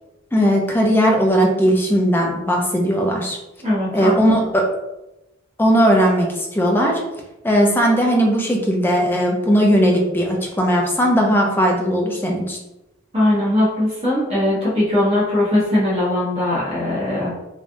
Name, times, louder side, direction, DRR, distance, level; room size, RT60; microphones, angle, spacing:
voice 1, 0.3-3.4 3.9-4.7 5.6-7.0 7.4-12.6, equal, 10° left, 0 dB, 0.5 m, -17 dB
voice 2, 3.6-4.1 13.1-17.3, left 1 dB, 30° right, -8 dB, 1.0 m, -19 dB
3.1 x 2.3 x 2.6 m, 0.95 s
head